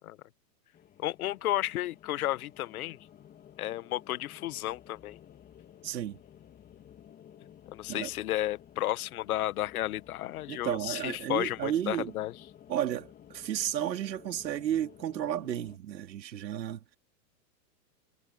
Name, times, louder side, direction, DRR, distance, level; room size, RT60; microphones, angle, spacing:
sound 1, 0.7-15.8, left 10 dB, 20° left, 2.6 m, -54 dB
voice 1, 1.0-3.0 3.6-5.2 7.7-12.3, left 14 dB, 60° left, 1.5 m, -32 dB
voice 2, 5.8-6.2 7.9-8.1 10.5-12.1 12.7-16.8, right 11 dB, 80° right, 3.0 m, -33 dB
hypercardioid pair, 150°, 50 cm